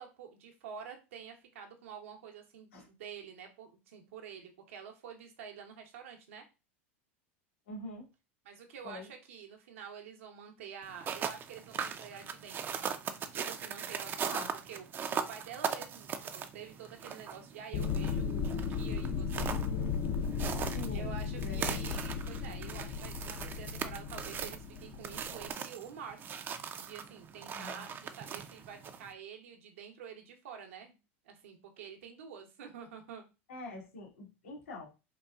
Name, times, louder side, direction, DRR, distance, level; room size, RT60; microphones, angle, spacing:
voice 1, 0.0-6.4 8.4-12.8 13.3-14.8 15.1-19.6 20.9-26.2 26.8-31.0 31.2-33.2, right 7 dB, 80° right, 4 dB, 0.9 m, -48 dB
voice 2, 7.7-8.1 8.8-9.1 14.3-14.5 20.5-21.1 21.4-21.8 27.5-27.8 33.5-34.9, left 1 dB, 85° left, -2 dB, 1.5 m, -45 dB
sound 1, 10.8-29.1, right 7 dB, 30° right, 0.4 m, -40 dB
sound 2, 17.7-25.5, left 6 dB, 40° left, 0.4 m, -36 dB
3.9 x 2.3 x 2.3 m, 0.29 s
hypercardioid pair, 105°, 7 cm